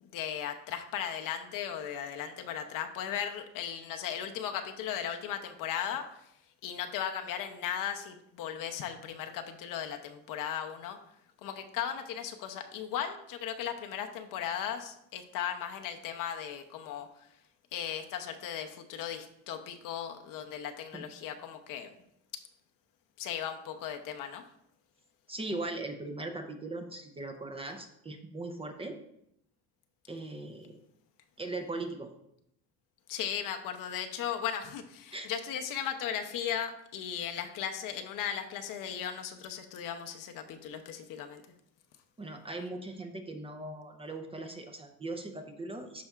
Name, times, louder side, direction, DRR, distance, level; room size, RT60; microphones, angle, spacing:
voice 1, 0.0-6.1 6.6-11.0 11.4-17.3 17.7-22.0 23.2-24.4 33.1-41.4, left 9 dB, 60° left, 6 dB, 0.8 m, -37 dB
voice 2, 25.3-29.0 30.1-30.8 31.4-32.1 35.1-35.3 42.2-46.0, right 2 dB, 15° right, 4 dB, 0.6 m, -39 dB
12.0 x 4.2 x 2.4 m, 0.77 s
cardioid pair, 130°, 38 cm